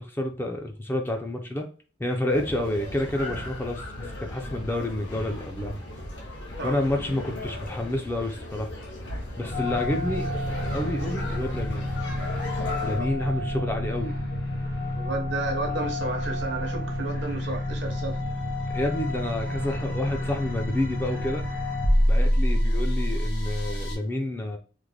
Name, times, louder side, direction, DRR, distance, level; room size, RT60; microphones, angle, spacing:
voice 1, 0.0-1.6 2.0-3.8 4.2-5.7 6.6-8.7 9.4-10.3 10.6-11.9 12.8-14.2 18.7-21.4 22.0-24.6, left 1 dB, 10° left, 0.4 m, -29 dB
sound 1, 2.3-13.0, left 1 dB, 75° left, 1.1 m, -36 dB
sound 2, 9.5-24.0, left 1 dB, 60° left, 1.0 m, -28 dB
voice 2, 12.7-13.1 14.9-18.2, right 3 dB, 75° right, 0.8 m, -32 dB
3.2 x 2.0 x 3.5 m
head